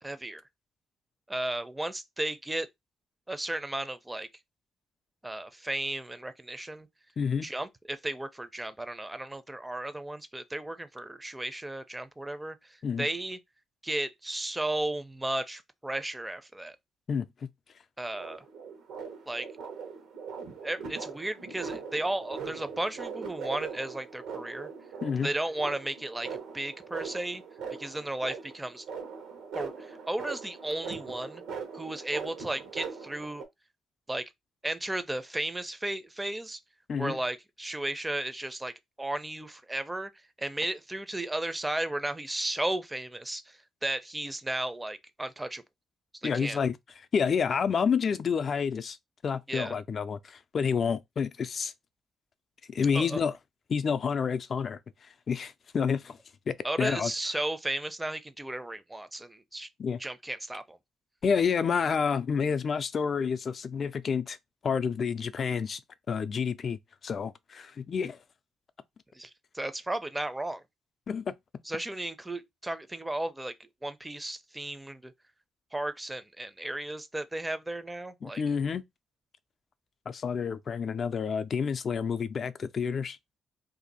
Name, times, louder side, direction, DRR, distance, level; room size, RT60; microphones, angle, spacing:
voice 1, 0.0-0.4 1.3-2.7 3.3-4.3 5.2-6.9 7.4-12.6 13.0-13.4 13.8-16.8 18.0-18.4 19.3-19.5 20.6-24.7 25.2-27.4 27.8-28.8 29.5-29.7 30.1-31.4 31.7-33.4 34.1-34.3 34.6-36.6 37.0-38.7 39.0-40.1 40.4-45.6 46.2-46.6 49.5-49.7 52.9-53.2 56.6-59.7 60.0-60.8 69.1-69.3 69.5-70.6 71.7-75.1 75.7-78.4, right 1 dB, 10° right, 0.5 m, -34 dB
voice 2, 7.2-7.5 12.8-13.1 17.1-17.3 25.0-25.3 36.9-37.2 46.2-46.8 47.1-49.0 49.2-51.7 52.7-53.4 53.7-56.2 56.5-57.1 59.8-60.0 61.2-64.4 64.6-65.8 66.1-68.2 71.1-71.3 78.2-78.8 80.1-83.2, left 6 dB, 50° left, 0.4 m, -29 dB
sound 1, 18.1-33.4, right 5 dB, 90° right, 1.0 m, -41 dB
2.6 x 2.4 x 4.0 m
cardioid pair, 90°, 0 cm